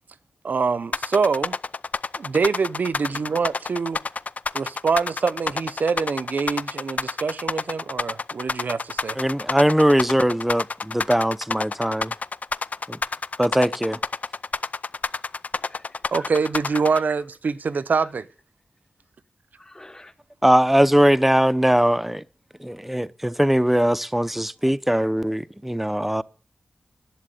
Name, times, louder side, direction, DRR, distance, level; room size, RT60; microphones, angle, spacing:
voice 1, 0.4-1.6 2.2-4.0 4.5-9.2 16.1-18.3, right 5 dB, 75° right, 0.8 m, -25 dB
sound 1, 0.9-17.0, left 4 dB, 60° left, 0.5 m, -28 dB
voice 2, 9.2-12.1 12.9-13.0 13.4-14.0 20.4-22.2 22.6-26.2, equal, 5° right, 0.6 m, -20 dB
voice 3, 15.6-16.3 16.7-17.1 18.0-18.1 19.6-20.1, left 1 dB, 20° left, 1.0 m, -47 dB
11.5 x 7.6 x 9.2 m
cardioid pair, 60°, 3 cm